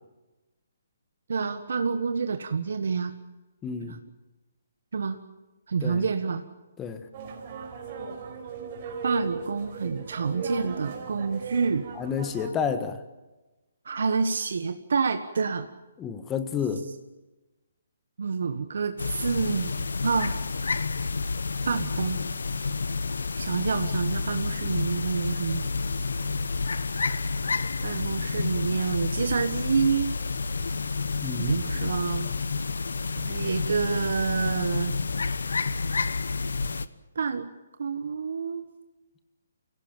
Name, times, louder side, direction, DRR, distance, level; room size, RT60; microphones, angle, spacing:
voice 1, 1.3-3.1 3.9-4.0 4.9-5.2 5.7-6.4 9.0-11.9 13.8-15.7 18.2-20.4 21.7-22.2 23.4-25.6 27.8-30.2 31.4-32.3 33.2-34.9 37.1-37.5 37.8-38.7, right 5 dB, 70° right, 8 dB, 1.4 m, -28 dB
voice 2, 3.6-4.0 5.8-6.0 6.8-7.1 11.9-13.0 16.0-16.8 31.2-31.6, left 7 dB, 15° left, 10 dB, 1.4 m, -30 dB
sound 1, 7.1-12.5, right 3 dB, 35° right, 4.6 m, -37 dB
sound 2, 19.0-36.9, left 4 dB, 85° left, 1.0 m, -29 dB
24.5 x 17.0 x 8.9 m, 1.1 s
hypercardioid pair, 160°, 0 cm